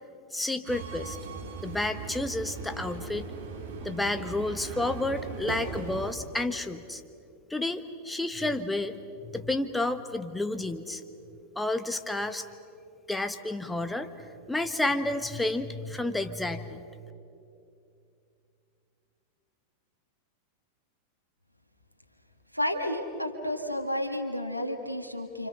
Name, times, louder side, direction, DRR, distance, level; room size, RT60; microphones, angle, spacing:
voice 1, 0.3-1.2 1.6-3.2 3.8-7.0 7.5-8.9 9.2-11.0 11.5-12.5 13.1-14.1 14.5-16.8, left 2 dB, 5° left, 9 dB, 1.3 m, -30 dB
Subway metro underground, 0.7-6.1, right 4 dB, 55° right, 3.3 m, -38 dB
voice 2, 22.5-25.5, left 1 dB, 90° left, 3 dB, 1.8 m, -31 dB
29.5 x 26.0 x 6.5 m, 2.6 s
figure-of-eight pair, 90°, 0 cm